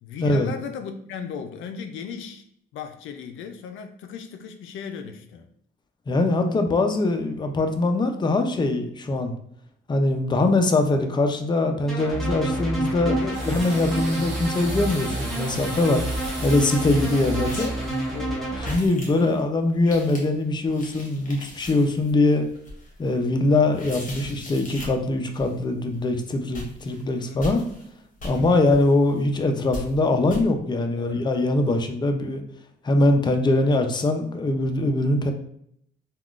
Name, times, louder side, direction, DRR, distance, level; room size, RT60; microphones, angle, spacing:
voice 1, 0.0-2.4 2.7-5.5 6.5-6.7 13.0-13.5 18.1-18.5 19.1-19.3 27.0-27.5 28.2-28.7 30.9-31.3 31.6-31.9, left 6 dB, 80° left, 7 dB, 0.4 m, -36 dB
voice 2, 6.1-9.3 9.9-13.2 13.5-16.0 16.4-17.7 18.7-22.5 23.0-27.7 28.2-32.4 32.8-35.3, left 2 dB, 20° left, 5 dB, 0.4 m, -22 dB
sound 1, 11.9-18.7, right 1 dB, ahead, 1.0 m, -29 dB
sound 2, 13.3-18.8, right 2 dB, 90° right, 0.8 m, -39 dB
sound 3, 14.5-15.3 15.6-15.7 15.9-17.0 17.4-17.9 18.6-19.4 19.7-25.0 25.3-25.6 25.9-26.2 26.5-27.9 28.2-29.4 29.7-30.0 30.3-30.4, left 1 dB, 40° left, 1.1 m, -40 dB
3.5 x 2.3 x 2.4 m, 0.69 s
cardioid pair, 90°, 20 cm